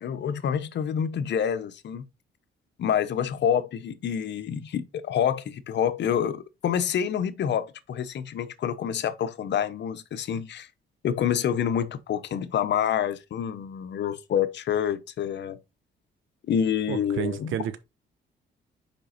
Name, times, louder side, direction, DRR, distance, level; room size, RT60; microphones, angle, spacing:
voice 1, 0.0-2.1 2.8-10.7 11.0-15.6 16.5-17.5, left 8 dB, 60° left, 0.8 m, -27 dB
voice 2, 16.9-17.8, right 10 dB, 80° right, 1.0 m, -30 dB
5.3 x 5.2 x 4.2 m
cardioid pair, 90°, 20 cm